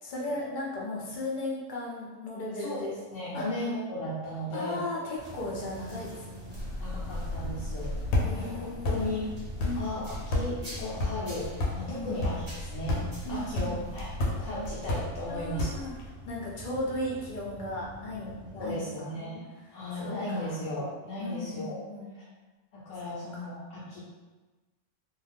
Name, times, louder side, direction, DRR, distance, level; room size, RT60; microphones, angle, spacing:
voice 1, 0.0-3.0 3.3-3.5 4.5-6.6 8.2-9.1 9.6-9.9 11.9-12.2 13.2-13.8 15.3-15.9 16.3-19.1 19.9-20.6 21.2-22.1 23.0-23.4, left 1 dB, 50° left, -4 dB, 0.6 m, -36 dB
voice 2, 2.5-2.9 3.1-4.8 6.8-9.3 9.8-13.0 13.3-15.7 18.5-19.4 19.7-21.8 22.1-22.3 22.7-24.0, left 1 dB, 70° left, -6 dB, 0.9 m, -36 dB
sound 1, 5.2-18.7, right 2 dB, 30° right, 0.6 m, -46 dB
sound 2, 6.5-16.1, left 2 dB, 90° left, 1.1 m, -33 dB
2.5 x 2.2 x 3.3 m, 1.2 s
omnidirectional pair, 1.4 m